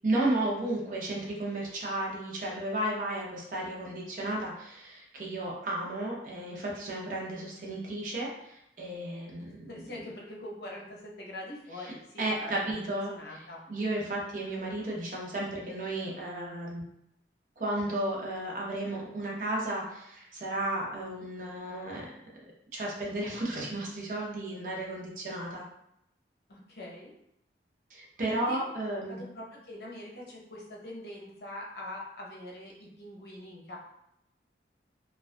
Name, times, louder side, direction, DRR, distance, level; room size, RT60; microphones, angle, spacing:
voice 1, 0.0-9.8 12.2-13.1 13.7-16.8 17.6-22.1 22.7-25.6 27.9-29.2, right 1 dB, 45° right, -3 dB, 0.5 m, -33 dB
voice 2, 9.4-13.6 26.5-27.2 28.3-28.6 29.1-33.8, left 1 dB, 60° left, -3 dB, 0.6 m, -43 dB
2.3 x 2.2 x 2.4 m, 0.79 s
head